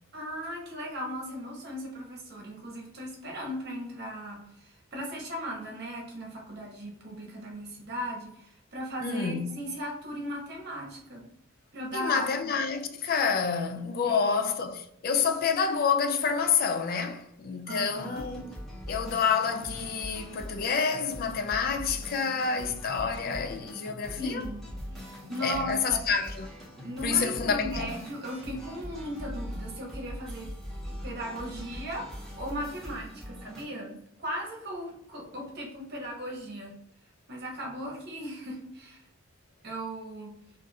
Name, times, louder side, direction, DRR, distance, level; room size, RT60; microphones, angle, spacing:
voice 1, 0.1-11.2 11.7-12.5 14.0-14.4 17.7-18.2 24.2-24.6 24.9-26.0 26.8-30.5 30.9-36.8 37.3-39.0 39.6-40.3, equal, 55° right, 0.8 m, -37 dB
voice 2, 9.0-9.6 11.9-18.4 18.9-24.4 25.4-26.5 27.0-28.0, left 6 dB, 45° left, 0.4 m, -28 dB
sound 1, 17.8-33.7, equal, ahead, 0.9 m, -42 dB
2.6 x 2.4 x 4.0 m
head